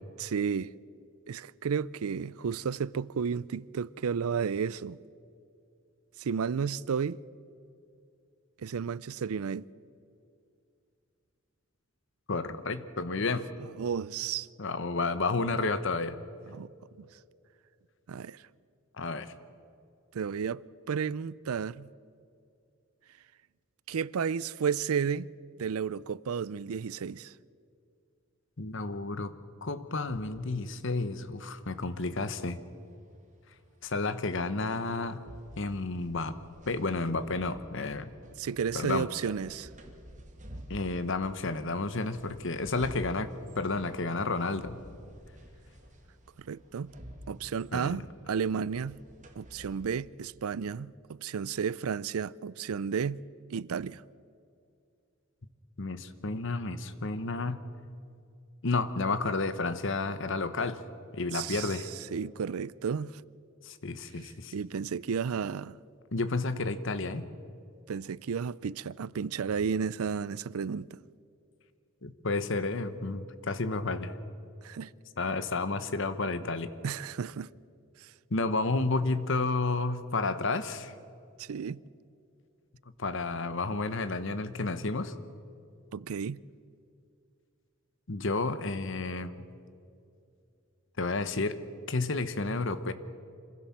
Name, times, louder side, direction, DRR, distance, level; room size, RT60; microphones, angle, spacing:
voice 1, 0.2-0.7 1.3-5.0 6.2-7.2 8.6-9.6 13.8-14.5 16.5-16.7 17.0-17.1 18.1-18.4 20.1-21.9 23.9-25.3 25.6-27.3 38.4-39.7 46.4-46.9 47.3-49.0 49.4-53.2 53.5-54.0 61.3-61.8 62.1-63.2 64.5-65.8 67.9-71.0 74.6-74.9 76.8-77.5 78.0-78.1 81.4-81.8 85.9-86.4, right 6 dB, 90° right, 0.5 m, -32 dB
voice 2, 12.3-13.4 14.6-16.2 19.0-19.3 28.6-29.3 29.6-32.6 33.8-35.2 35.6-36.4 36.7-38.1 38.7-39.1 40.7-43.3 43.6-44.8 47.7-48.0 55.8-57.6 58.6-60.8 61.1-61.9 63.6-64.5 66.1-67.2 72.0-74.1 75.2-76.7 78.3-80.9 83.0-85.1 88.1-89.4 91.0-91.6 91.9-92.9, left 3 dB, 60° left, 1.1 m, -31 dB
sound 1, 30.1-50.0, equal, 35° right, 2.1 m, -51 dB
25.5 x 16.0 x 7.3 m
head